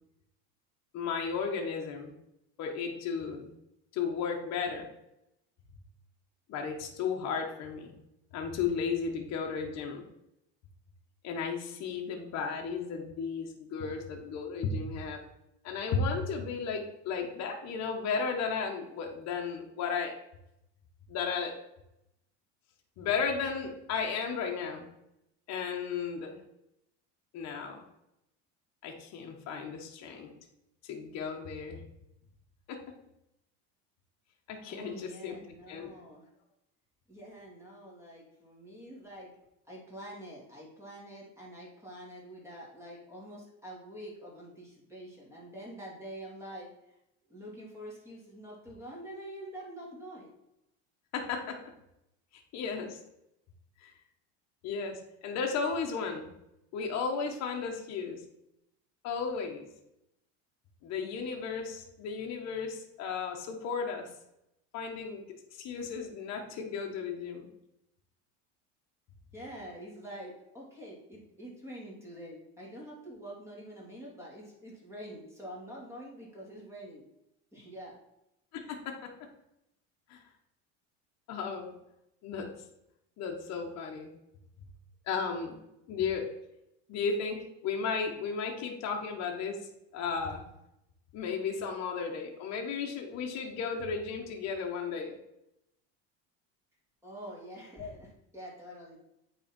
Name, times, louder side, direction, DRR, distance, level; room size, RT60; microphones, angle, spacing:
voice 1, 0.9-2.1 2.6-3.5 3.9-4.9 6.5-7.9 8.3-10.0 11.2-15.2 15.6-20.1 21.1-21.5 23.0-24.9 25.5-26.4 27.3-27.8 28.8-30.3 30.8-31.8 32.7-32.8 34.5-35.4 35.7-35.9 51.1-51.6 52.5-53.0 53.8-53.9 54.6-56.3 56.7-58.2 59.0-59.7 60.8-64.1 64.7-65.2 65.5-67.5 78.5-78.9 80.1-80.2 81.3-81.7 82.2-82.5 83.2-84.1 85.1-85.6 85.9-86.3 86.9-87.4 87.6-89.6 89.9-90.4 91.1-95.1 97.8-97.9, left 5 dB, 50° left, 1 dB, 1.4 m, -34 dB
voice 2, 34.7-36.3 37.1-39.3 39.6-47.0 47.3-50.3 69.3-77.0 77.5-78.0 97.0-99.0, right 1 dB, 10° right, -4 dB, 2.8 m, -46 dB
8.7 x 4.2 x 4.5 m, 0.84 s
supercardioid pair, 120°, 34 cm